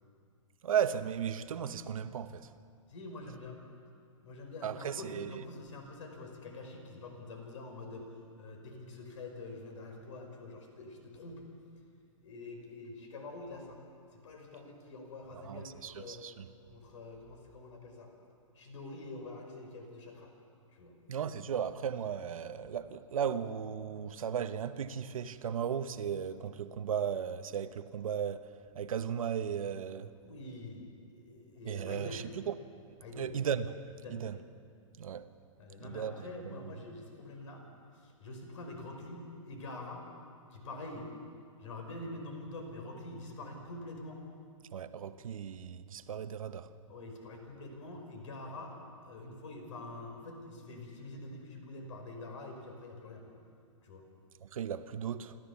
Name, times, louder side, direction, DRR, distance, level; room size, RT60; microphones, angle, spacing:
voice 1, 0.6-2.5 4.6-5.4 15.4-16.5 21.1-28.5 28.7-30.1 31.6-32.5 33.2-33.7 34.1-34.4 35.0-35.3 35.8-36.7 44.7-46.7 54.4-55.4, right 8 dB, 80° right, 1.0 m, -36 dB
voice 2, 2.9-3.6 4.2-8.1 8.4-11.4 12.2-13.8 14.1-16.2 16.7-18.1 18.5-20.3 20.7-21.0 30.2-32.2 33.0-33.4 34.0-34.2 35.6-37.6 37.9-40.1 40.5-41.1 41.6-44.2 46.9-48.8 49.0-53.4 53.8-54.0, left 2 dB, 65° left, 5.1 m, -46 dB
27.5 x 13.5 x 7.2 m
hypercardioid pair, 160°, 18 cm